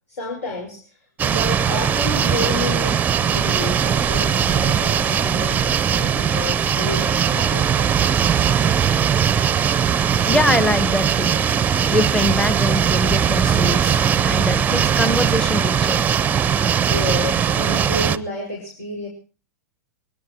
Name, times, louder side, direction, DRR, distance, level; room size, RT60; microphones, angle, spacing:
voice 1, 0.1-1.0 1.2-8.2 16.9-19.1, left 2 dB, 65° left, -1 dB, 5.2 m, -30 dB
sound 1, 1.2-18.2, right 8 dB, 20° right, 0.7 m, -19 dB
voice 2, 10.3-11.4 11.9-16.0, left 1 dB, 5° left, 12 dB, 1.1 m, -23 dB
23.0 x 19.0 x 3.0 m, 0.36 s
figure-of-eight pair, 100°, 9 cm